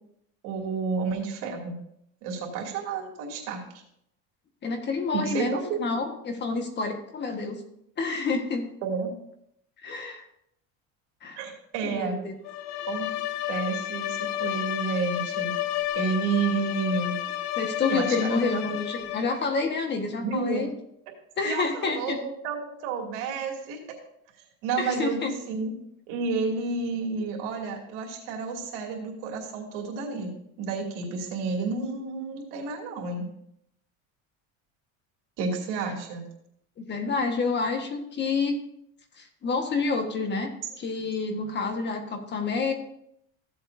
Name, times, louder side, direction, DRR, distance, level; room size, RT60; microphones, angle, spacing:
voice 1, 0.4-1.7 2.2-3.6 5.1-6.1 8.8-9.1 11.4-12.2 12.9-13.1 13.5-15.5 15.9-17.2 17.9-18.6 20.2-20.7 21.4-23.8 24.6-25.7 26.1-30.3 30.6-33.3 35.4-36.2, right 4 dB, 80° right, 0 dB, 2.6 m, -30 dB
voice 2, 4.6-7.6 8.0-8.6 9.8-10.2 11.2-11.4 11.8-12.3 17.6-20.7 21.4-22.2 24.8-25.3 36.8-38.6 39.2-40.5 40.8-42.7, left 4 dB, 30° left, 5 dB, 1.5 m, -28 dB
Bowed string instrument, 12.4-19.5, left 13 dB, 80° left, 0.8 m, -31 dB
15.0 x 7.8 x 2.7 m, 0.74 s
cardioid pair, 130°, 33 cm